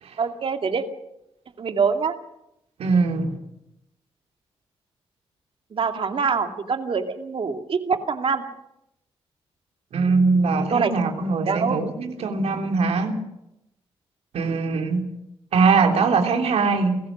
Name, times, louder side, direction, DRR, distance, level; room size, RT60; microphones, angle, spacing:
voice 1, 0.2-0.9 1.6-2.1 5.7-8.4 10.5-10.9 11.5-11.8, right 5 dB, 55° right, 5 dB, 2.5 m, -24 dB
voice 2, 2.8-3.4 9.9-13.2 14.3-15.1 15.5-17.0, right 4 dB, 75° right, 3 dB, 3.3 m, -21 dB
29.0 x 15.0 x 6.2 m, 0.86 s
supercardioid pair, 55°, 11 cm